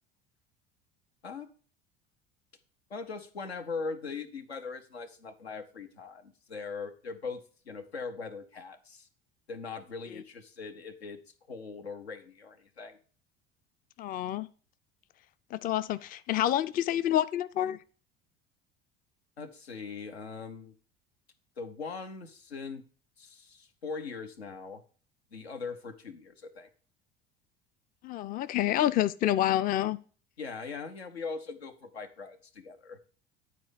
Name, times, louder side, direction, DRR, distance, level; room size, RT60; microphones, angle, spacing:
voice 1, 2.9-9.1 9.5-11.2 11.5-13.0 19.4-20.7 21.6-22.8 23.2-24.8 25.3-26.7 30.4-33.0, left 4 dB, 90° left, 0.9 m, -40 dB
voice 2, 14.0-14.5 15.5-17.8 28.0-30.0, left 12 dB, 30° left, 0.4 m, -28 dB
9.6 x 4.2 x 5.0 m
figure-of-eight pair, 65°, 30 cm